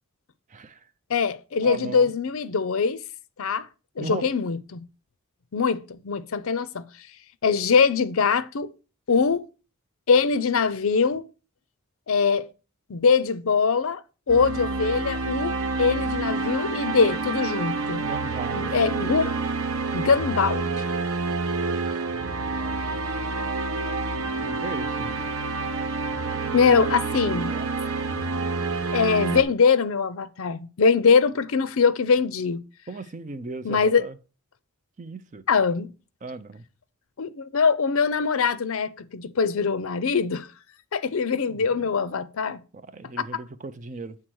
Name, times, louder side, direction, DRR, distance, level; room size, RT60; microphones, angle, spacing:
voice 1, 0.5-0.9 1.6-2.1 4.0-4.3 18.0-18.8 24.4-25.6 27.1-27.7 32.9-34.2 35.0-35.5 36.2-36.7 41.5-41.9 42.7-44.2, right 3 dB, 35° right, 0.5 m, -37 dB
voice 2, 1.1-3.0 3.4-3.7 4.0-4.9 5.5-6.8 7.4-8.7 9.1-9.4 10.1-11.3 12.1-12.5 12.9-14.0 14.3-15.5 15.8-18.0 18.5-19.3 19.9-20.6 26.5-27.5 28.9-32.6 33.6-34.0 35.5-35.9 37.2-40.5 40.9-42.6, left 5 dB, 70° left, 0.5 m, -22 dB
sound 1, 14.3-29.4, right 3 dB, 75° right, 0.8 m, -28 dB
7.6 x 3.7 x 6.1 m
head